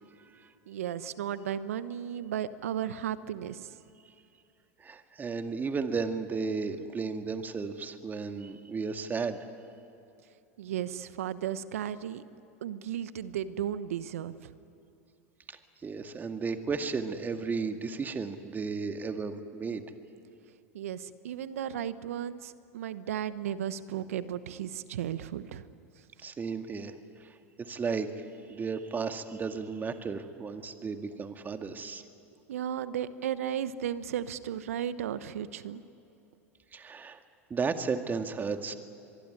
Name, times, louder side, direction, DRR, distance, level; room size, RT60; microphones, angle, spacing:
voice 1, 0.7-3.6 10.6-12.2 12.6-14.5 20.7-25.7 32.5-35.8, right 10 dB, 75° right, 15 dB, 1.0 m, -35 dB
voice 2, 4.8-9.4 15.5-19.8 26.2-26.9 27.2-28.1 28.5-32.0 36.7-37.2 37.5-38.7, right 5 dB, 25° right, 7 dB, 2.0 m, -34 dB
24.0 x 23.0 x 9.9 m, 2.9 s
hypercardioid pair, 85°, 8 cm